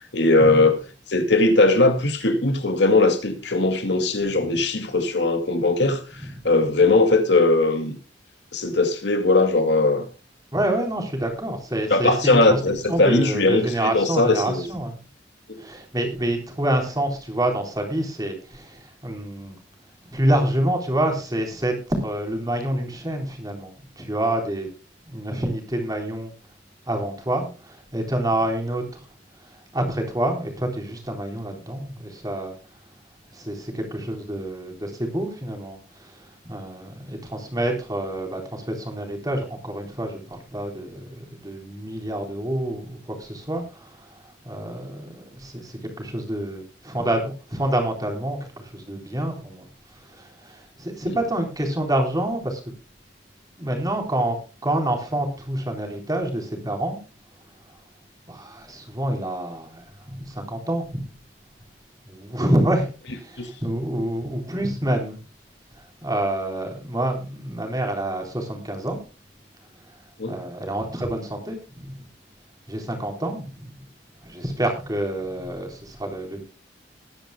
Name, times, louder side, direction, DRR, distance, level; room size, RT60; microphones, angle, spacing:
voice 1, 0.1-0.8 1.1-8.0 8.5-10.1 11.9-14.6 15.5-15.6 51.1-51.2 63.4-63.5 70.2-70.4, left 2 dB, 70° left, 2.2 m, -20 dB
voice 2, 10.5-15.0 15.6-19.6 20.1-24.7 25.1-26.3 26.9-28.8 29.7-32.5 33.3-49.7 50.1-52.6 53.6-54.4 54.6-57.0 58.3-61.1 62.1-65.2 66.0-69.0 70.3-72.0 72.7-73.8 74.2-76.4, right 1 dB, 20° right, 3.9 m, -27 dB
20.5 x 10.5 x 2.2 m
head